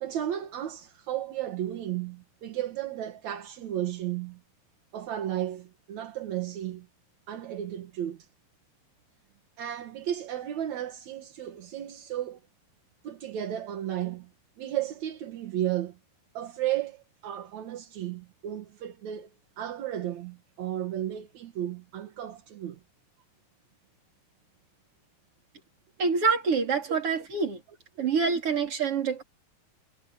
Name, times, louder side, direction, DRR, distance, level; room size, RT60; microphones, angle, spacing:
voice 1, 0.0-4.4 4.9-6.9 7.3-8.3 9.6-12.4 13.0-14.3 14.6-16.0 16.3-19.3 19.6-22.8 26.9-27.0, right 11 dB, 60° right, 2.1 m, -34 dB
voice 2, 26.0-27.6 28.0-29.2, right 5 dB, 35° right, 4.2 m, -26 dB
omnidirectional pair, 4.8 m